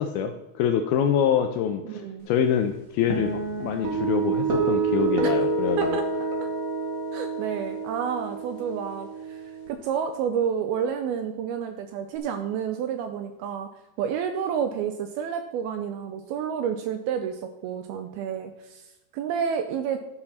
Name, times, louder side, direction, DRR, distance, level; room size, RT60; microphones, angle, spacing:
voice 1, 0.0-6.0, left 8 dB, 80° left, 7 dB, 2.2 m, -25 dB
voice 2, 1.8-2.3 5.2-5.4 5.8-6.1 6.4-6.5 7.1-13.7 14.0-18.8 19.1-20.0, right 7 dB, 85° right, 8 dB, 2.3 m, -30 dB
sound 1, 3.1-9.7, right 4 dB, 45° right, 1.0 m, -28 dB
12.0 x 6.6 x 5.7 m, 1.0 s
omnidirectional pair, 4.9 m